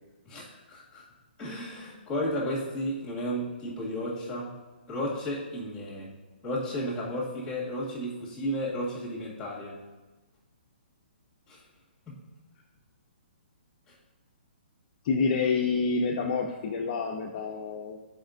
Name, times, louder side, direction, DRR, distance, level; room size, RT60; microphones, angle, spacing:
voice 1, 0.3-1.0 1.4-4.5 4.9-6.1 6.4-9.8 11.5-11.6 12.1-12.2 13.9-14.0, equal, 15° left, -5 dB, 2.0 m, -33 dB
voice 2, 15.0-18.0, left 4 dB, 40° left, 1 dB, 0.6 m, -28 dB
8.4 x 5.1 x 2.6 m, 1.2 s
hypercardioid pair, 150°, 6 cm